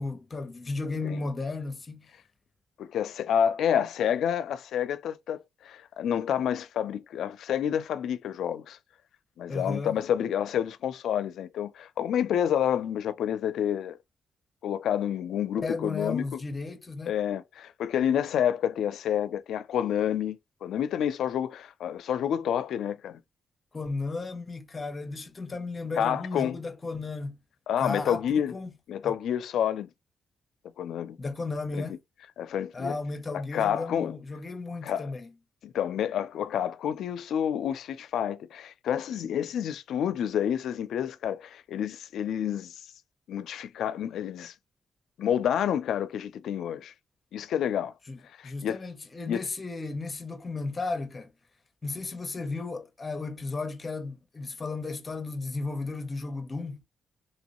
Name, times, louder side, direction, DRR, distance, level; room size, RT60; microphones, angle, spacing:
voice 1, 0.0-2.1 9.5-10.0 15.6-17.1 23.7-27.4 27.8-28.2 28.5-28.7 29.0-29.2 31.2-32.0 32.7-35.3 48.1-51.3 51.8-56.8, left 3 dB, 25° left, 0.6 m, -34 dB
voice 2, 2.8-8.8 9.4-14.0 14.6-16.4 17.1-23.2 26.0-26.6 27.7-28.6 28.9-29.9 30.8-31.2 31.7-31.9 32.4-32.9 33.3-34.2 34.8-35.1 35.6-42.7 43.3-44.5 45.2-46.9 47.3-47.9 48.4-48.8 49.3-49.4, left 9 dB, 75° left, 0.4 m, -29 dB
3.0 x 2.9 x 2.9 m
cardioid pair, 155°, 0 cm